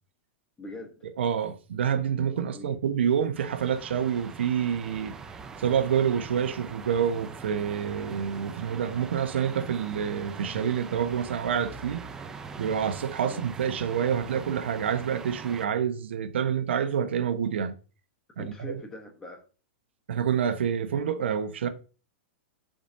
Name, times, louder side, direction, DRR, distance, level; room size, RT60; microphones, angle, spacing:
voice 1, 0.6-1.0 2.5-2.8 13.2-13.4 18.4-19.4, left 2 dB, 10° left, 1.1 m, -42 dB
voice 2, 1.2-5.1 5.6-12.1 12.6-17.7 18.4-18.8 20.1-21.7, right 8 dB, 90° right, 1.2 m, -27 dB
sound 1, 3.4-15.6, right 5 dB, 10° right, 0.5 m, -42 dB
10.5 x 5.2 x 2.7 m
supercardioid pair, 175°, 6 cm